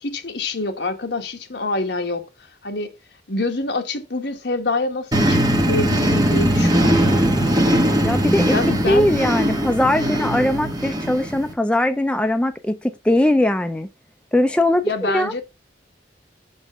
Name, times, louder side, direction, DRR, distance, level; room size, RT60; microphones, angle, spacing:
voice 1, 0.0-2.3 2.6-2.9 3.3-7.7 8.5-9.1 14.8-15.4, left 2 dB, 65° left, 1.2 m, -26 dB
sound 1, 5.1-11.5, equal, 25° right, 1.3 m, -19 dB
voice 2, 8.0-8.5 8.9-13.9 14.3-15.3, left 1 dB, 5° left, 0.4 m, -20 dB
5.9 x 5.4 x 3.5 m
head